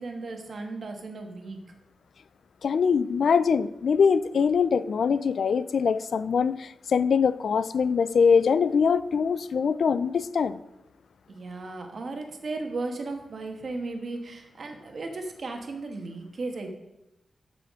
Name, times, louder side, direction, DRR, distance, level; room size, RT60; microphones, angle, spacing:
voice 1, 0.0-1.6 11.3-16.7, right 3 dB, 55° right, 4 dB, 1.3 m, -35 dB
voice 2, 2.6-10.6, left 6 dB, 70° left, 15 dB, 0.3 m, -23 dB
12.5 x 5.8 x 3.7 m, 0.91 s
wide cardioid pair, 130°, 0 cm